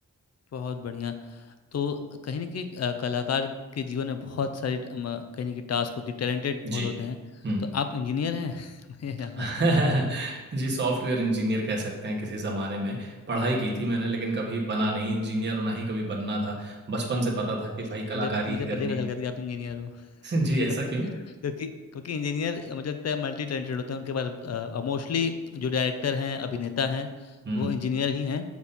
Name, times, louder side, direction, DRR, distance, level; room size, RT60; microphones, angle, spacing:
voice 1, 0.5-1.4 1.7-7.2 7.6-9.7 18.1-19.9 21.4-28.4, left 6 dB, 55° left, 8 dB, 0.7 m, -30 dB
voice 2, 9.4-19.0 20.2-21.1 27.4-27.7, right 1 dB, 35° right, -2 dB, 1.3 m, -28 dB
7.0 x 4.2 x 5.4 m, 1.3 s
wide cardioid pair, 145°, 32 cm